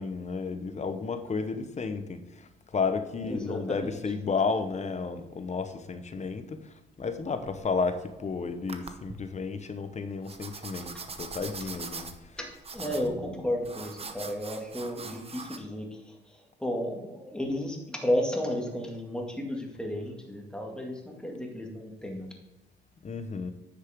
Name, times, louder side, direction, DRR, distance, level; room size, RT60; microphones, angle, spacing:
voice 1, 0.0-12.1 13.3-13.5 23.0-23.5, left 4 dB, 35° left, 9 dB, 0.9 m, -32 dB
voice 2, 3.2-4.0 12.4-22.3, left 1 dB, 5° left, 0 dB, 2.1 m, -33 dB
sound 1, 7.1-8.2 8.7-9.1 10.2-15.6, right 4 dB, 30° right, 0.9 m, -42 dB
9.8 x 6.3 x 3.6 m, 0.96 s
cardioid pair, 90°, 20 cm